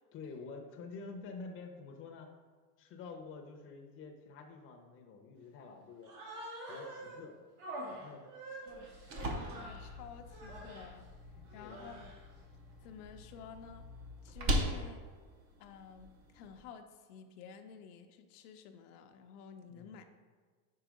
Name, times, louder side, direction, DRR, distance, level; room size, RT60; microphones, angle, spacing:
voice 1, 0.1-2.3 2.8-6.1 6.7-7.4 7.9-8.4 11.3-11.8 19.7-20.0, left 4 dB, 25° left, 2 dB, 0.7 m, -48 dB
Human voice, 6.0-7.2 7.6-9.9 10.3-10.9 11.5-12.3, right 1 dB, 55° right, 1.5 m, -46 dB
sound 1, 8.7-16.6, equal, 30° right, 0.7 m, -40 dB
voice 2, 9.1-11.1 11.5-12.1 12.8-13.9 14.2-15.0 15.6-20.0, left 6 dB, 75° left, 6 dB, 0.7 m, -52 dB
4.7 x 4.6 x 5.0 m, 1.5 s
supercardioid pair, 140°, 46 cm